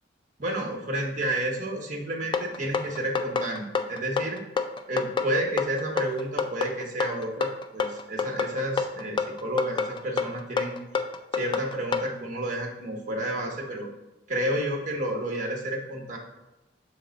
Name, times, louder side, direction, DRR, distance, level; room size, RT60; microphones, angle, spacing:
voice 1, 0.4-4.4 4.9-10.8 11.3-13.9 14.3-16.2, right 1 dB, 45° right, 1 dB, 1.1 m, -31 dB
sound 1, 2.3-12.1, left 5 dB, 25° left, 0.3 m, -28 dB
6.5 x 3.8 x 3.9 m, 0.98 s
head